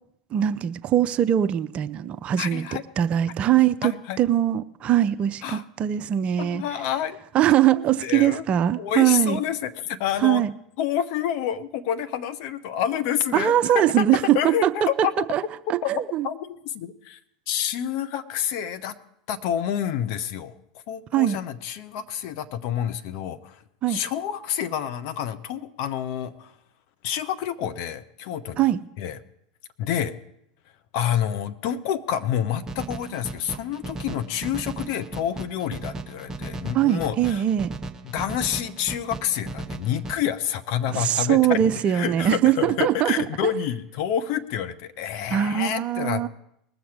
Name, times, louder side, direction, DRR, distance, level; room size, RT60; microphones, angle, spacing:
voice 1, 0.3-2.6 3.0-6.6 7.3-9.4 10.2-10.5 13.3-15.4 15.7-16.3 21.1-21.4 23.8-24.0 28.6-28.8 36.7-37.7 40.9-43.1 45.3-46.3, right 11 dB, 35° right, 0.5 m, -22 dB
voice 2, 2.4-2.8 3.8-4.2 5.4-5.6 6.4-7.2 7.7-8.4 8.8-10.4 10.8-15.3 15.8-17.2 17.5-18.9 19.3-20.5 20.9-23.6 23.9-26.5 27.0-28.7 29.0-29.2 29.8-30.1 30.9-37.4 38.0-46.3, left 9 dB, 55° left, 0.8 m, -28 dB
sound 1, 32.7-40.1, right 2 dB, 20° right, 0.9 m, -36 dB
20.0 x 7.1 x 4.8 m
figure-of-eight pair, 85°, 3 cm